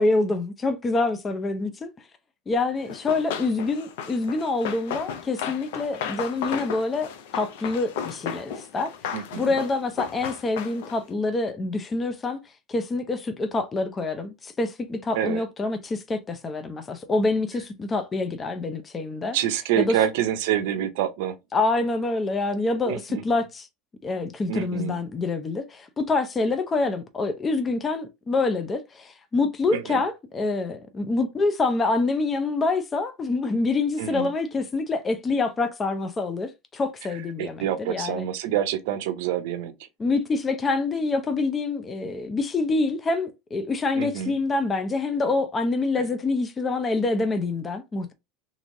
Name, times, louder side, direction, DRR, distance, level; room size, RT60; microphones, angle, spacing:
voice 1, 0.0-1.9 2.5-8.9 9.4-12.4 12.7-19.4 19.8-20.0 21.5-23.7 24.0-38.2 40.0-48.1, left 3 dB, 25° left, 0.5 m, -26 dB
Run, 2.9-11.1, left 8 dB, 75° left, 0.5 m, -34 dB
voice 2, 9.1-9.6 15.1-15.4 19.3-21.4 22.9-23.2 24.5-25.0 29.7-30.0 34.0-34.3 37.1-39.9 43.9-44.3, right 11 dB, 70° right, 0.5 m, -27 dB
3.0 x 2.6 x 2.5 m
hypercardioid pair, 105°, 0 cm